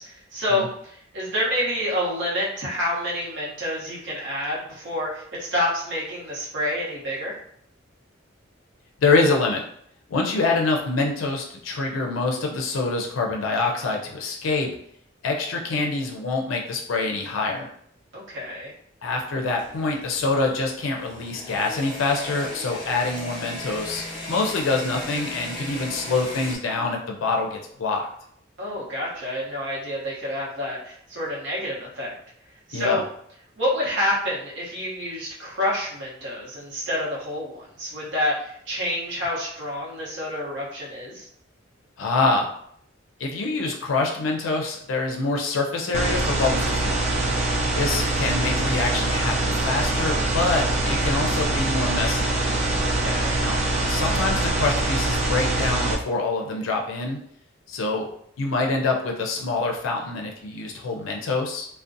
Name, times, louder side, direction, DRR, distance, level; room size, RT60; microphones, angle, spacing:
voice 1, 0.0-7.4 18.1-18.7 28.6-32.1 32.7-33.0 33.6-41.3 52.8-53.4, left 1 dB, 65° right, -6 dB, 0.8 m, -28 dB
voice 2, 9.0-9.6 10.1-14.7 15.2-17.7 19.0-28.1 32.7-33.0 42.0-42.5 43.2-47.0 47.8-52.3 53.4-53.6 53.9-57.2 57.7-58.1 58.4-61.7, left 3 dB, 85° left, 1 dB, 0.4 m, -25 dB
sound 1, 19.4-26.6, left 1 dB, 25° left, 0.7 m, -37 dB
sound 2, 45.9-56.0, right 2 dB, 35° right, 0.4 m, -24 dB
2.5 x 2.1 x 2.5 m, 0.66 s
head